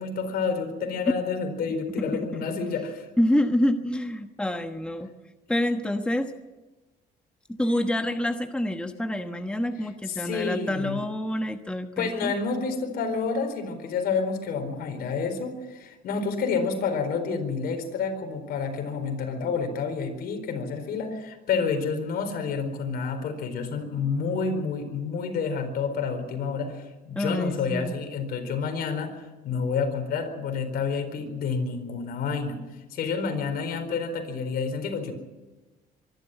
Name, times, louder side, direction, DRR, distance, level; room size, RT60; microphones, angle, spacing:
voice 1, 0.0-3.1 10.1-11.0 12.0-32.6 32.9-35.1, left 5 dB, 65° left, 6 dB, 4.4 m, -29 dB
voice 2, 3.2-5.1 5.5-6.3 7.5-12.3 27.2-27.9, left 1 dB, 5° left, 6 dB, 1.2 m, -27 dB
24.5 x 12.0 x 9.2 m, 1.2 s
cardioid pair, 110°, 17 cm